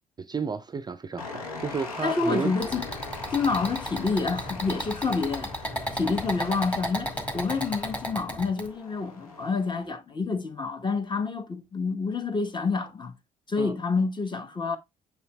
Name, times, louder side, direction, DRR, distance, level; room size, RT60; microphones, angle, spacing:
voice 1, 0.2-2.5 13.6-13.8, right 5 dB, 25° right, 0.5 m, -32 dB
sound 1, 1.2-9.9, left 3 dB, 85° left, 1.0 m, -41 dB
voice 2, 2.0-2.8 3.3-5.5 5.9-13.1 13.5-14.8, left 4 dB, 25° left, 1.1 m, -28 dB
sound 2, 2.6-8.7, equal, 5° left, 2.0 m, -33 dB
sound 3, 2.7-8.1, left 8 dB, 70° left, 0.6 m, -49 dB
6.8 x 6.3 x 2.3 m
figure-of-eight pair, 50°, 18 cm